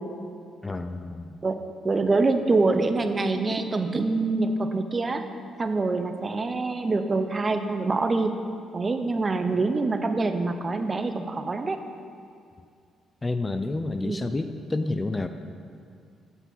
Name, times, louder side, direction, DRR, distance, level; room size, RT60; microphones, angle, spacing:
voice 1, 0.6-1.4 13.2-15.3, left 2 dB, 20° left, 8 dB, 0.4 m, -29 dB
voice 2, 1.8-5.2 5.6-8.3 8.7-11.8 14.0-14.2, right 3 dB, 30° right, 8 dB, 0.6 m, -25 dB
8.3 x 5.5 x 5.9 m, 2.3 s
cardioid pair, 90°, 0 cm